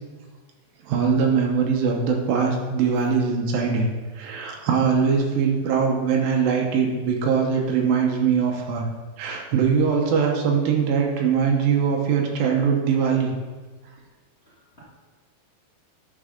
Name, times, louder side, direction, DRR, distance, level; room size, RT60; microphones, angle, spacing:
voice 1, 0.9-3.9 4.1-8.9 9.2-13.3, right 6 dB, 70° right, 1 dB, 2.5 m, -22 dB
voice 2, 2.8-3.1 14.4-14.8, right 1 dB, 75° left, -8 dB, 0.6 m, -56 dB
10.5 x 4.7 x 5.1 m, 1.4 s
omnidirectional pair, 4.6 m